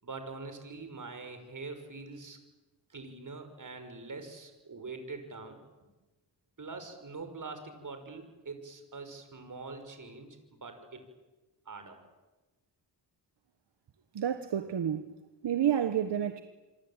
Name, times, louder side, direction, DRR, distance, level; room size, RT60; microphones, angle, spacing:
voice 1, 0.0-2.4 2.9-5.6 6.6-11.0 11.7-12.0, right 3 dB, 45° right, 6.1 m, -44 dB
voice 2, 14.1-15.2 15.4-16.4, right 9 dB, 75° right, 1.4 m, -29 dB
26.5 x 23.5 x 9.1 m
cardioid pair, 75°, 41 cm